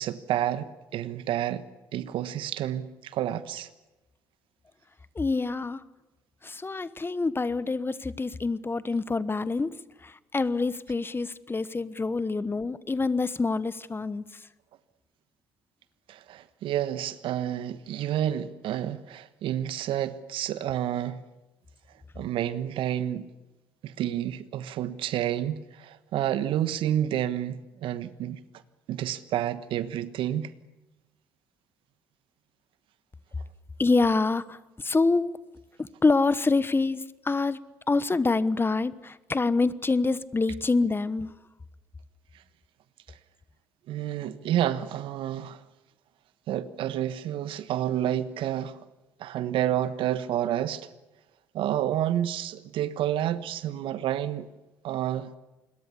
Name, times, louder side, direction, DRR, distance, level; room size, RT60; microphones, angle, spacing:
voice 1, 0.0-1.6 1.9-3.7 16.1-21.2 22.1-23.3 23.8-28.4 28.9-30.5 43.9-45.6 46.5-48.8 49.2-50.9 51.5-54.5 54.8-55.3, right 11 dB, 65° right, 1.2 m, -29 dB
voice 2, 5.1-5.8 6.4-9.7 10.0-14.2 33.8-35.3 35.8-37.6 37.9-41.3, left 3 dB, 25° left, 1.1 m, -26 dB
27.5 x 21.5 x 7.0 m
hypercardioid pair, 50°, 10 cm